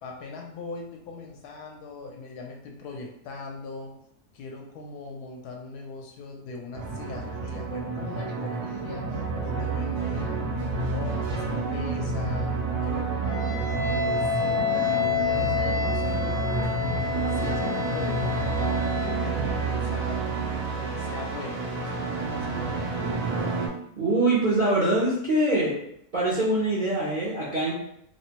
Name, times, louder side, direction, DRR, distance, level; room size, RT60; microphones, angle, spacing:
voice 1, 0.0-4.0 4.3-12.6 12.8-16.5 16.8-20.3 20.7-23.2, left 3 dB, 75° left, 1 dB, 1.1 m, -41 dB
sound 1, 6.7-23.7, right 4 dB, 85° right, 1.3 m, -29 dB
Wind instrument woodwind instrument, 13.2-19.4, left 7 dB, 45° left, 0.8 m, -29 dB
voice 2, 24.0-25.8 26.1-27.7, right 2 dB, 55° right, -8 dB, 0.5 m, -23 dB
3.1 x 2.1 x 2.8 m, 0.72 s
omnidirectional pair, 1.7 m